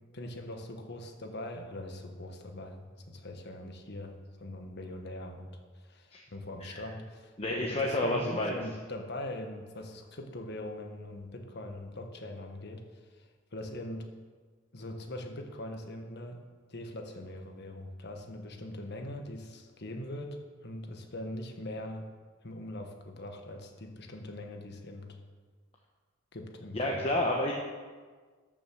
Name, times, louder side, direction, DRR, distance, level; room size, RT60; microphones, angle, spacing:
voice 1, 0.1-12.8 13.2-14.1 14.7-16.4 16.7-20.4 20.6-22.1 22.4-25.2 26.3-27.1, left 1 dB, 55° left, 4 dB, 1.4 m, -42 dB
voice 2, 7.4-8.6 26.7-27.5, left 1 dB, 30° left, -1 dB, 1.1 m, -30 dB
14.0 x 6.3 x 6.3 m, 1.5 s
head